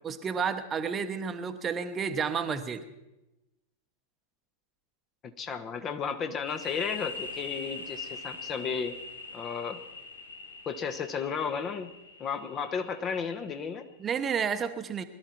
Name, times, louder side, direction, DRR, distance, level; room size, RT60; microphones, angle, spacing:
voice 1, 0.0-2.8 14.0-15.0, right 6 dB, 25° right, 9 dB, 1.1 m, -31 dB
voice 2, 5.2-9.0 9.3-9.8 10.7-11.9 12.2-13.9, left 6 dB, 30° left, 8 dB, 1.2 m, -33 dB
sound 1, 6.5-13.9, left 4 dB, 75° left, 1.7 m, -42 dB
21.0 x 12.5 x 4.5 m, 0.96 s
figure-of-eight pair, 90°, 0 cm